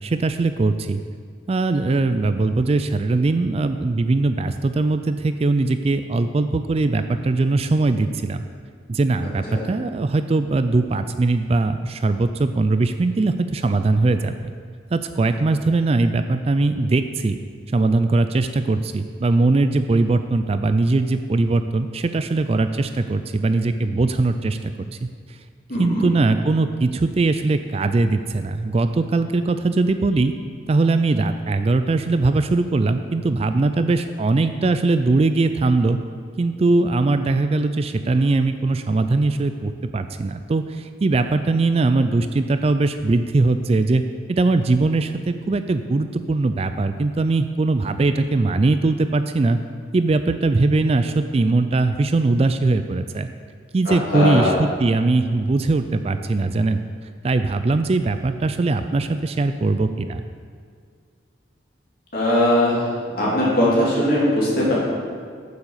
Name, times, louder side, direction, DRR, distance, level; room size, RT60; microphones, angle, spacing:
voice 1, 0.0-1.0 1.5-8.4 8.9-14.5 14.9-17.4 17.7-25.1 25.8-30.3 30.7-36.0 36.4-44.0 44.3-49.6 49.9-53.3 53.7-56.8 57.2-60.2, right 3 dB, 30° right, 10 dB, 0.3 m, -20 dB
voice 2, 25.7-26.1 53.8-54.6 62.1-62.8 63.1-64.7, left 1 dB, 50° left, -6 dB, 3.2 m, -20 dB
9.2 x 7.3 x 6.6 m, 2.1 s
head